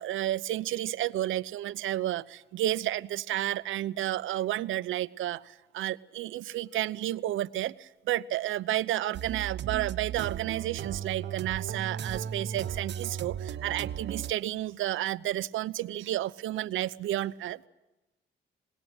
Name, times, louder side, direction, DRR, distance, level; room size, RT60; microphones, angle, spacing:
voice 1, 0.0-17.7, right 14 dB, 80° right, 14 dB, 0.9 m, -31 dB
sound 1, 9.1-14.3, right 9 dB, 60° right, 1.2 m, -36 dB
27.0 x 20.5 x 8.1 m, 1.0 s
cardioid pair, 90°, 20 cm